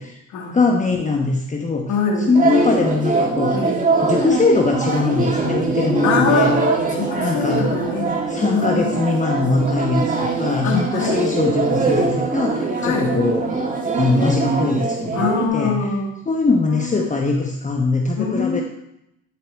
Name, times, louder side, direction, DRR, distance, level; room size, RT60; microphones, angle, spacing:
voice 1, 0.5-1.9 2.3-3.6 4.0-6.5 7.2-7.6 8.3-13.5 14.0-15.9 16.3-18.6, left 3 dB, 25° left, 1 dB, 1.0 m, -21 dB
voice 2, 1.9-2.4 3.5-3.8 6.0-8.1 8.5-9.1 10.6-11.2 12.8-13.1 15.1-16.1 16.7-17.2 18.2-18.6, left 4 dB, 90° left, 0 dB, 2.1 m, -23 dB
sound 1, 2.3-15.5, right 3 dB, 25° right, 2.0 m, -22 dB
11.5 x 4.8 x 4.7 m, 0.82 s
cardioid pair, 90°, 30 cm